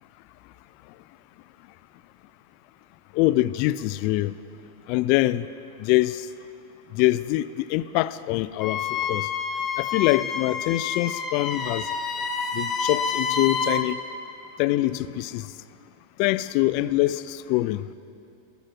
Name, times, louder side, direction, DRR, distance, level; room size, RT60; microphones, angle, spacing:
voice 1, 3.1-4.3 4.9-5.5 5.8-6.3 6.9-9.3 9.8-11.9 12.5-14.0 14.6-15.5 16.2-17.9, left 17 dB, 45° left, 16 dB, 0.3 m, -24 dB
Wind instrument woodwind instrument, 8.6-13.9, left 5 dB, 25° left, 1.0 m, -28 dB
14.0 x 13.0 x 6.1 m, 2.7 s
figure-of-eight pair, 90°, 0 cm